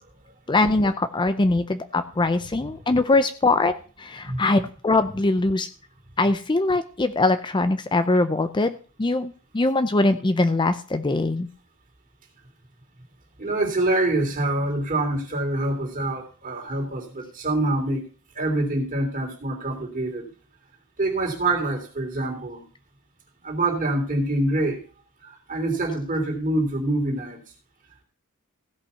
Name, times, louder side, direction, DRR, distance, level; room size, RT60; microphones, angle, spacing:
voice 1, 0.5-5.7 6.2-11.5, left 2 dB, 20° left, 11 dB, 0.5 m, -22 dB
voice 2, 13.4-18.1 18.3-20.3 21.0-22.6 23.4-24.8 25.2-27.4, right 2 dB, 40° right, 2 dB, 3.2 m, -25 dB
16.0 x 5.6 x 5.6 m, 0.38 s
head